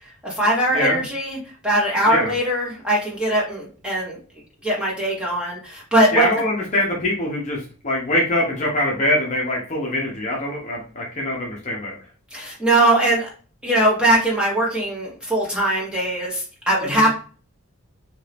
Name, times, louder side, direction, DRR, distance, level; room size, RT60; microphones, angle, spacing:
voice 1, 0.2-1.4 1.6-4.2 4.6-6.3 12.3-13.3 13.6-17.1, right 1 dB, 5° right, -5 dB, 1.0 m, -20 dB
voice 2, 6.1-11.9 16.8-17.1, left 1 dB, 30° left, -2 dB, 0.7 m, -23 dB
2.9 x 2.6 x 3.3 m, 0.39 s
head